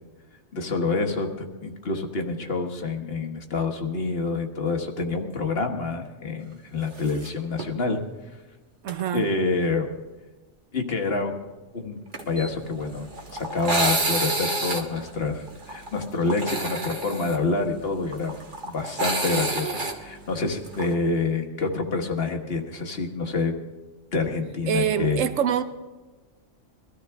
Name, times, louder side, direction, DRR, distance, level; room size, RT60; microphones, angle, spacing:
voice 1, 0.5-8.0 9.1-9.9 10.7-11.3 11.7-12.0 12.3-13.1 13.3-18.3 18.6-23.5 24.1-25.2, left 3 dB, 50° left, 1.5 m, -27 dB
sound 1, 7.0-7.3 7.6-7.7 8.9-9.1 12.1-20.9, right 2 dB, 40° right, 1.5 m, -29 dB
voice 2, 8.8-9.3 24.7-25.6, right 9 dB, 80° right, 1.2 m, -25 dB
22.5 x 13.5 x 3.5 m
omnidirectional pair, 1.3 m